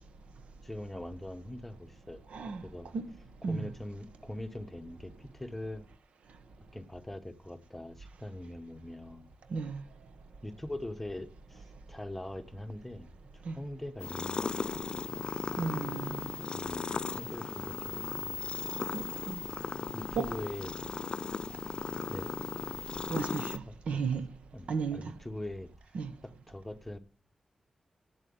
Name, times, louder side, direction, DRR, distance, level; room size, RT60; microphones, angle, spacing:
voice 1, 0.6-2.2 2.6-2.9 3.4-5.9 6.7-9.3 10.4-13.1 13.3-14.8 16.5-18.4 19.9-20.7 22.1-22.3 23.6-24.0 24.5-26.0 26.2-27.0, left 1 dB, 10° left, 1.2 m, -42 dB
voice 2, 2.3-2.6 2.9-3.1 3.4-3.7 9.5-9.8 13.5-13.6 15.6-16.4 18.9-19.4 20.2-20.4 23.1-24.2 24.7-25.1 25.9-26.1, right 5 dB, 90° right, 1.1 m, -34 dB
sound 1, 14.0-23.6, left 5 dB, 50° left, 0.5 m, -37 dB
8.6 x 7.7 x 8.8 m
cardioid pair, 85°, 2 cm